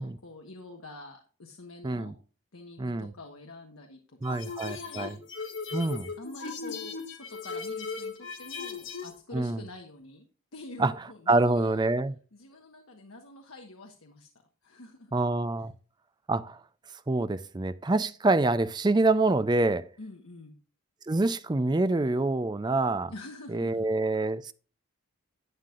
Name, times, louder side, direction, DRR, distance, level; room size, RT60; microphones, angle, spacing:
voice 1, 0.0-2.1 2.5-4.0 4.3-5.2 6.2-10.3 10.5-11.9 12.3-14.3 14.6-15.1 20.0-20.6 23.1-23.9, left 2 dB, 80° left, 1.2 m, -46 dB
voice 2, 2.8-3.1 4.2-5.1 5.7-6.1 9.3-9.6 10.8-10.9 11.3-12.1 15.1-15.7 16.3-16.6 17.1-19.8 21.1-23.1 23.5-24.5, right 2 dB, 20° right, 0.4 m, -26 dB
sound 1, 4.2-9.2, left 5 dB, 60° left, 1.5 m, -37 dB
11.0 x 9.3 x 2.4 m
head